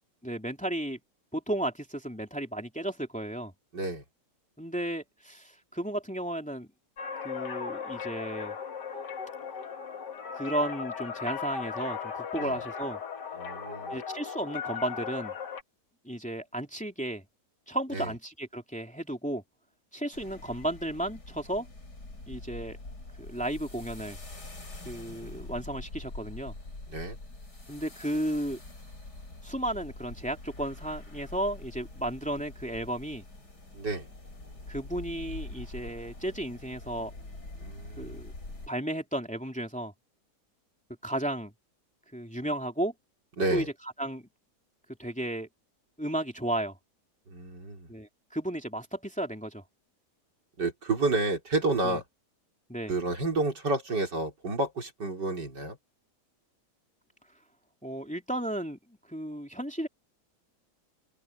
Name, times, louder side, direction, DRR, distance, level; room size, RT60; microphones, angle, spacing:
voice 1, 0.2-1.0 1.3-3.5 4.6-6.7 7.2-8.5 10.3-13.0 13.9-15.3 16.0-17.2 17.7-19.4 19.9-21.7 22.3-22.8 23.2-24.2 24.8-26.5 27.7-28.6 29.4-33.2 34.7-37.1 38.0-38.3 38.7-39.9 41.0-41.5 42.1-42.9 43.5-43.6 44.0-44.3 45.0-45.5 46.0-46.8 47.9-49.6 51.8-52.0 52.7-52.9 57.8-58.8 59.1-59.9, right 1 dB, 5° left, 2.9 m, -33 dB
voice 2, 3.7-4.0 12.4-12.5 13.4-14.0 17.9-18.1 26.9-27.2 33.7-34.1 37.6-38.2 43.4-43.7 47.3-47.9 50.6-52.0 52.9-55.8, right 2 dB, 85° right, 5.0 m, -30 dB
sound 1, 7.0-15.6, left 6 dB, 85° left, 2.3 m, -37 dB
sound 2, 20.1-38.7, left 2 dB, 70° left, 6.4 m, -44 dB
omnidirectional pair, 1.8 m